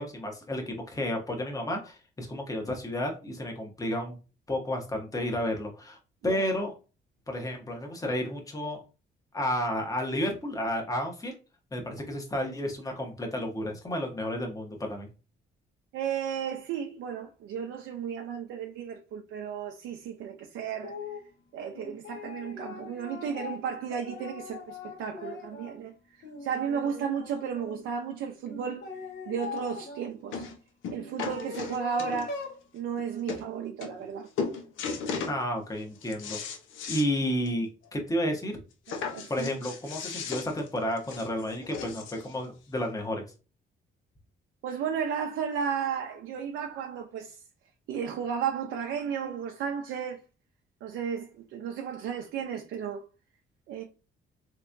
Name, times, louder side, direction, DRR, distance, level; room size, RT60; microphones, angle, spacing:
voice 1, 0.0-4.2 4.5-6.0 6.2-6.7 7.3-8.8 9.3-11.3 11.7-15.1 35.3-36.4 36.9-38.5 39.3-43.2, left 1 dB, 15° left, 1.0 m, -31 dB
voice 2, 15.9-21.0 21.5-25.9 26.4-28.9 29.3-30.5 30.9-32.5 32.7-34.3 38.9-39.5 44.6-47.4 47.9-50.2 50.8-53.0 53.7-53.8, right 7 dB, 80° right, 0.5 m, -34 dB
sound 1, 20.8-21.3 21.7-25.8 26.2-27.8 28.5-30.1 30.9-32.6, left 4 dB, 60° left, 1.1 m, -41 dB
sound 2, 29.6-29.7 30.3-30.6 30.8-32.4 33.0-33.1 33.3-33.4 33.8-34.1 34.4-35.4 35.8-37.1 37.5-37.6 37.9-38.0 38.9-42.3 43.1-43.2, left 5 dB, 80° left, 0.8 m, -36 dB
3.4 x 2.9 x 2.5 m
cardioid pair, 90°, 20 cm